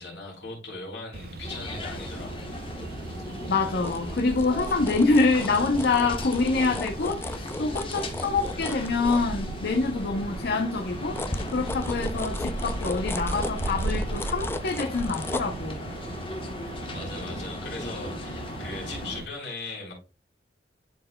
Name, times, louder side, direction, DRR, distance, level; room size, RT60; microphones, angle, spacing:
voice 1, 0.0-2.3 2.8-3.0 16.6-19.9, left 3 dB, 80° left, 3.4 m, -39 dB
sound 1, 1.1-19.3, right 3 dB, 60° right, 0.5 m, -37 dB
sound 2, 1.4-19.2, left 1 dB, 30° left, 1.2 m, -38 dB
voice 2, 3.5-15.8, left 3 dB, 60° left, 0.7 m, -26 dB
sound 3, 3.8-9.9 10.3-17.8 18.2-18.3, left 2 dB, 15° left, 0.3 m, -37 dB
11.5 x 4.4 x 2.2 m
head